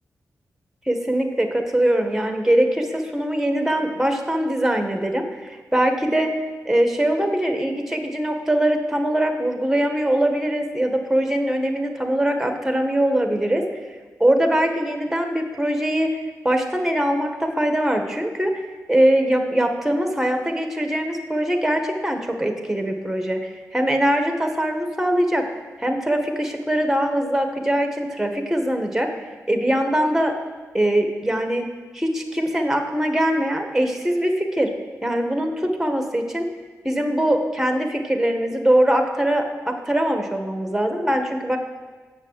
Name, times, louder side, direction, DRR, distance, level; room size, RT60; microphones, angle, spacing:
voice 1, 0.9-6.3 6.6-13.6 14.2-16.1 16.4-18.5 18.9-25.4 25.8-29.1 29.5-30.3 30.7-31.7 31.9-34.7 35.0-36.5 36.8-41.6, right 1 dB, 5° right, 4 dB, 1.6 m, -22 dB
7.1 x 6.7 x 7.6 m, 1.4 s
cardioid pair, 50°, 6 cm